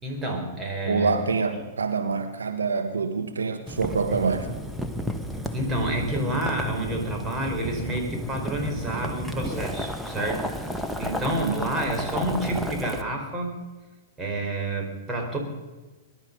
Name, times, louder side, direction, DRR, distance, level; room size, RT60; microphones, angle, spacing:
voice 1, 0.0-1.2 5.5-13.6 14.2-15.4, right 1 dB, 15° right, 1 dB, 4.8 m, -29 dB
voice 2, 0.8-4.5 11.4-11.7, right 5 dB, 80° right, 7 dB, 1.4 m, -26 dB
Boiling, 3.7-13.0, equal, ahead, 1.5 m, -32 dB
22.0 x 12.0 x 5.5 m, 1.2 s
figure-of-eight pair, 105°, 0 cm